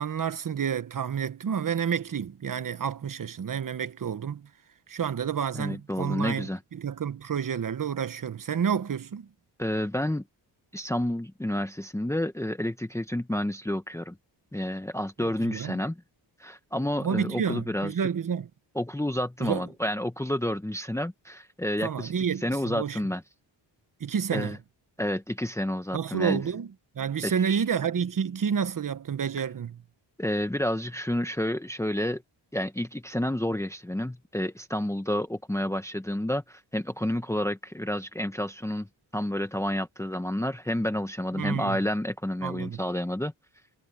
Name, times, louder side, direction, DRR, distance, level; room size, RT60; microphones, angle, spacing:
voice 1, 0.0-4.5 4.9-9.3 15.2-15.8 17.0-18.5 19.4-19.6 21.8-23.0 24.0-24.6 25.9-29.8 41.3-41.8 42.4-42.8, right 7 dB, 45° right, 1.2 m, -30 dB
voice 2, 5.5-6.6 9.6-10.2 10.7-14.2 14.5-16.0 16.4-17.9 18.7-22.1 22.4-23.2 24.3-24.6 25.0-26.4 27.2-27.6 30.2-32.2 32.5-38.9 39.1-43.3, left 1 dB, 5° left, 1.2 m, -30 dB
cardioid pair, 90°, 44 cm